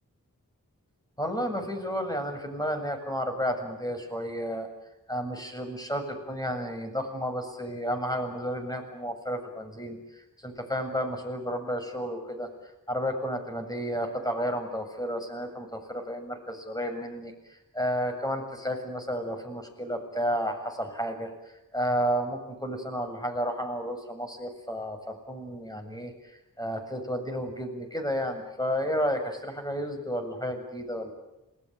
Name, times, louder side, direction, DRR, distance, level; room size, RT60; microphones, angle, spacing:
voice 1, 1.2-4.7 5.1-12.5 12.9-17.3 17.7-21.3 21.7-26.1 26.6-31.1, equal, 10° left, 5 dB, 7.3 m, -32 dB
28.0 x 19.5 x 9.3 m, 0.94 s
cardioid pair, 40°, 35 cm